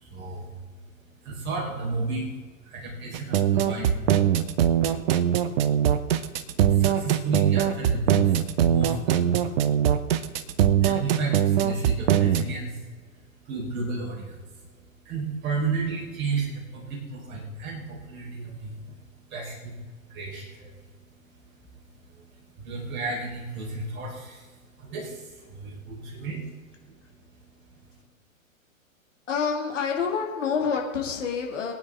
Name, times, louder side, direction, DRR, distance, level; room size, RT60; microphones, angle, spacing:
voice 1, 0.0-28.0, right 3 dB, 25° right, -5 dB, 4.8 m, -34 dB
sound 1, 3.1-12.4, right 10 dB, 45° right, 0.9 m, -22 dB
voice 2, 29.3-31.7, left 6 dB, 60° left, 1 dB, 2.8 m, -27 dB
24.5 x 9.3 x 3.8 m, 1.4 s
figure-of-eight pair, 105°, 41 cm